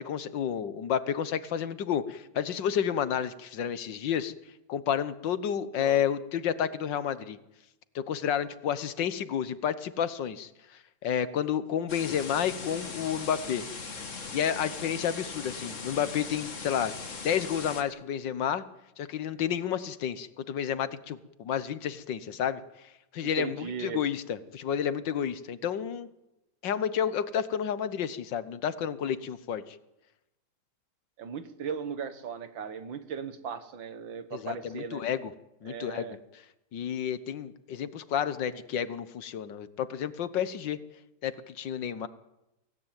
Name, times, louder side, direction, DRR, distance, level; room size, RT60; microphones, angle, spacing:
voice 1, 0.0-4.3 4.7-7.4 7.9-10.5 11.0-13.6 14.3-16.9 17.2-18.6 19.0-22.6 23.1-26.1 26.6-29.8 34.3-35.3 35.6-36.1 36.7-40.8 41.2-42.1, left 8 dB, 75° left, 14 dB, 1.8 m, -30 dB
sound 1, 11.9-17.8, left 4 dB, 40° left, 2.1 m, -39 dB
voice 2, 23.2-24.0 31.2-35.0 35.7-36.2, right 6 dB, 90° right, 11 dB, 2.2 m, -37 dB
24.0 x 16.5 x 9.1 m, 0.93 s
omnidirectional pair, 2.0 m